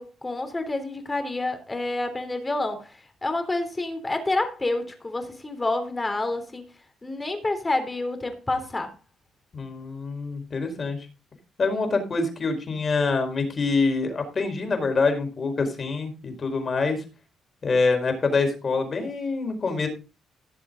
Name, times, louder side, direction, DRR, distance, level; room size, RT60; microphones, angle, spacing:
voice 1, 0.0-6.6 7.0-8.9, left 2 dB, 20° left, 3.4 m, -28 dB
voice 2, 9.5-11.1 11.6-17.0 17.6-19.9, left 4 dB, 40° left, 4.8 m, -25 dB
17.0 x 7.0 x 4.0 m
cardioid pair, 90°, 0 cm